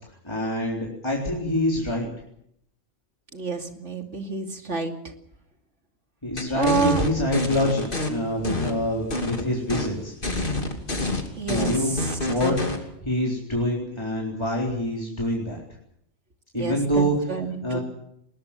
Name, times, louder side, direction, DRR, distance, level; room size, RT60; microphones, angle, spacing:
voice 1, 0.2-2.1 6.2-10.1 11.5-15.6 16.5-17.2 17.6-17.8, equal, 25° left, -2 dB, 4.1 m, -26 dB
voice 2, 3.3-5.1 6.5-7.0 11.4-12.1 16.6-17.8, right 5 dB, 90° right, 5 dB, 3.0 m, -29 dB
sound 1, 6.4-8.1 8.4-9.4 9.7-9.9 10.2-12.8, left 2 dB, 50° left, 3.1 m, -27 dB
21.0 x 21.0 x 7.5 m, 0.73 s
omnidirectional pair, 1.2 m